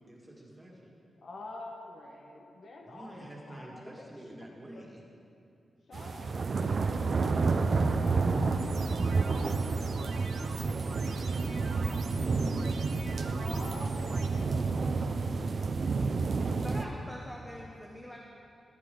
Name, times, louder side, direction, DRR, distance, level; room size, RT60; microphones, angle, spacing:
voice 1, 0.1-0.9 2.9-5.0 10.6-13.2 16.7-16.9, right 1 dB, 15° right, -2 dB, 1.9 m, -48 dB
voice 2, 1.2-4.1 4.7-4.9 5.9-8.6 8.9-9.6 9.9-10.0 13.0-14.9 15.9-16.1, left 2 dB, 65° left, 1 dB, 1.2 m, -48 dB
sound 1, 5.9-16.8, right 4 dB, 50° right, 0.5 m, -30 dB
sound 2, 8.6-14.3, right 4 dB, 80° right, 1.0 m, -44 dB
voice 3, 16.6-18.2, equal, 10° left, -2 dB, 1.0 m, -45 dB
14.5 x 10.5 x 3.9 m, 2.6 s
wide cardioid pair, 125°, 0 cm